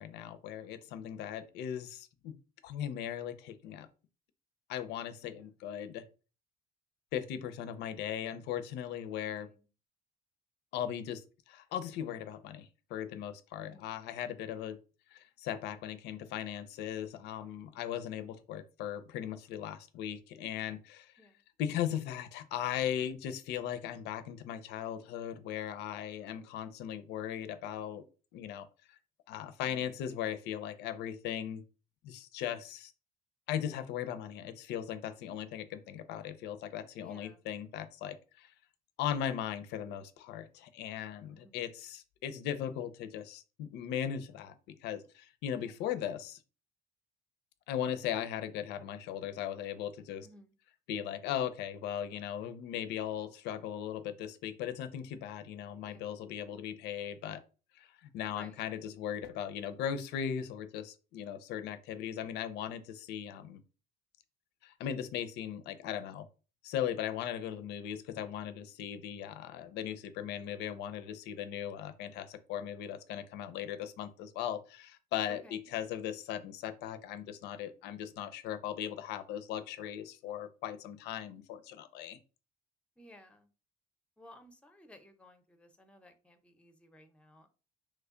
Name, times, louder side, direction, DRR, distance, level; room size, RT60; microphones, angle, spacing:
voice 1, 0.0-2.4 2.6-3.9 4.7-6.0 7.1-9.5 10.7-14.8 15.1-21.1 21.6-28.0 28.3-28.7 29.3-31.6 32.0-32.9 33.5-38.5 39.0-46.4 47.7-50.3 50.9-57.4 57.7-63.6 64.6-66.3 66.6-82.2, left 9 dB, 80° left, 11 dB, 0.4 m, -38 dB
voice 2, 9.2-9.7 13.6-14.0 21.2-21.4 26.3-26.5 37.0-37.5 41.3-41.7 45.6-45.7 50.2-50.5 55.8-56.1 58.3-58.6 67.5-67.7 75.3-75.7 83.0-83.5 84.2-87.5, left 1 dB, 5° left, 7 dB, 0.6 m, -57 dB
3.1 x 2.2 x 3.6 m, 0.34 s
cardioid pair, 110°, 17 cm